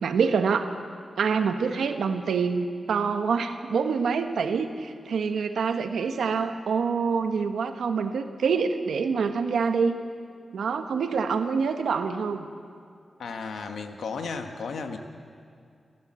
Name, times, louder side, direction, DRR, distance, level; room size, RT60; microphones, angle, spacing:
voice 1, 0.0-0.7 1.2-10.0 10.5-12.5, right 5 dB, 85° right, 7 dB, 1.3 m, -26 dB
voice 2, 13.2-15.0, left 4 dB, 85° left, 5 dB, 1.6 m, -34 dB
29.0 x 12.5 x 7.7 m, 2.4 s
cardioid pair, 55°, 0 cm